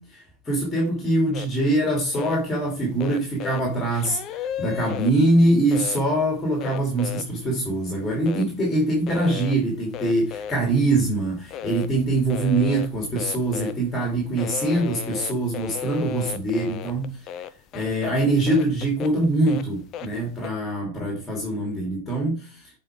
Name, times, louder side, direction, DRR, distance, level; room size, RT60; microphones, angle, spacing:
voice 1, 0.1-17.2 17.7-22.7, right 2 dB, 15° left, 2.9 m, -23 dB
sound 1, 1.3-1.5 1.9-2.4 3.0-5.1 5.7-6.0 6.5-7.8 8.1-8.5 9.1-9.6 9.9-11.1 11.5-11.9 12.1-13.9 14.2-18.1 18.5-20.1 20.4-20.5, left 9 dB, 35° left, 0.6 m, -34 dB
7.7 x 4.6 x 4.9 m
figure-of-eight pair, 90°, 0 cm